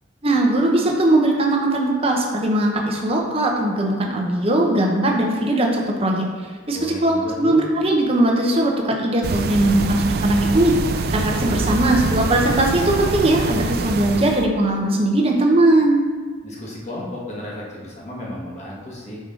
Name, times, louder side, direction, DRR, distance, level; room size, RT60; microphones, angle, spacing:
voice 1, 0.2-6.3 6.7-10.7 11.1-16.0, right 1 dB, 30° right, 0 dB, 0.8 m, -19 dB
voice 2, 6.7-7.7 11.3-11.7 16.4-19.2, left 1 dB, 35° left, -4 dB, 1.4 m, -33 dB
sound 1, 9.2-14.5, right 4 dB, 50° right, 0.4 m, -24 dB
6.3 x 5.4 x 3.8 m, 1.5 s
head